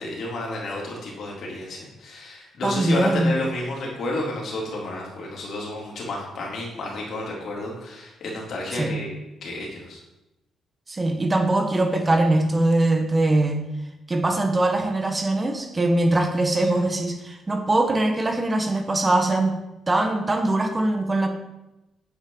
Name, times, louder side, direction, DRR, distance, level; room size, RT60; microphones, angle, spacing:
voice 1, 0.0-9.1 9.4-10.0, left 2 dB, 60° left, -2 dB, 3.3 m, -31 dB
voice 2, 2.6-3.3 8.8-9.0 10.9-13.7 14.1-19.6 19.9-21.3, right 2 dB, 25° right, 4 dB, 1.4 m, -22 dB
8.8 x 8.7 x 4.0 m, 0.95 s
cardioid pair, 90°, 0 cm